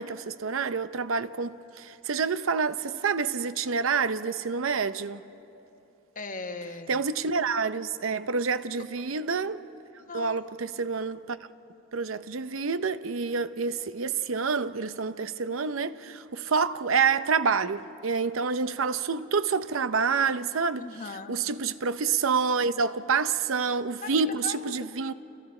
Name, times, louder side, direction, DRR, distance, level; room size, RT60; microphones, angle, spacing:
voice 1, 0.0-5.2 6.9-9.6 10.1-11.4 11.9-20.9 21.3-25.1, right 5 dB, 80° right, 0.7 m, -28 dB
voice 2, 6.1-7.0 10.0-10.4 20.8-21.3 24.0-24.9, left 3 dB, 40° left, 1.1 m, -39 dB
29.5 x 29.0 x 4.4 m
head